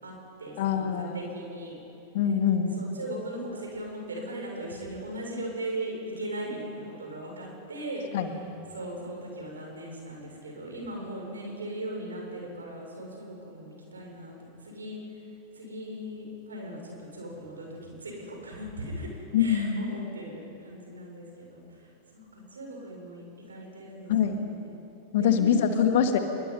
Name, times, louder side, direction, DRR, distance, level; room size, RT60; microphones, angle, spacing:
voice 1, 0.0-1.8 2.2-2.3 2.7-8.1 8.7-14.3 14.6-24.8 25.2-25.5, right 1 dB, 75° right, 0 dB, 6.7 m, -39 dB
voice 2, 0.6-1.2 2.1-2.8 8.1-8.3 19.3-19.9 24.1-24.4 25.1-26.2, left 8 dB, 55° left, 6 dB, 2.1 m, -24 dB
26.5 x 23.0 x 5.7 m, 2.6 s
figure-of-eight pair, 90°, 0 cm